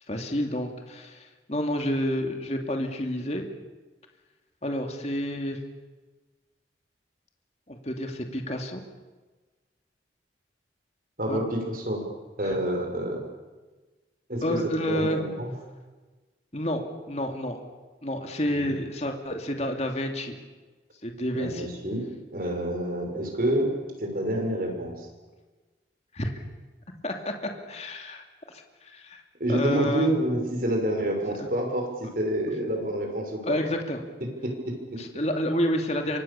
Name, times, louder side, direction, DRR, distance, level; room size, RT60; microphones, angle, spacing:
voice 1, 0.1-3.4 4.6-5.6 7.7-8.8 11.3-11.4 12.4-12.6 14.4-15.2 16.5-16.8 17.1-17.6 18.0-20.4 21.0-21.7 26.1-26.4 27.0-27.3 27.7-28.2 28.5-29.2 29.5-30.1 31.4-31.5 33.4-34.0 35.0-36.2, equal, 35° left, 3 dB, 2.6 m, -29 dB
voice 2, 11.2-12.1 12.4-13.2 14.3-14.6 14.9-15.5 18.5-18.7 21.3-23.7 24.0-25.1 29.4-33.6 34.2-35.0, right 1 dB, 50° right, 3 dB, 6.0 m, -28 dB
28.0 x 25.0 x 7.1 m, 1.3 s
head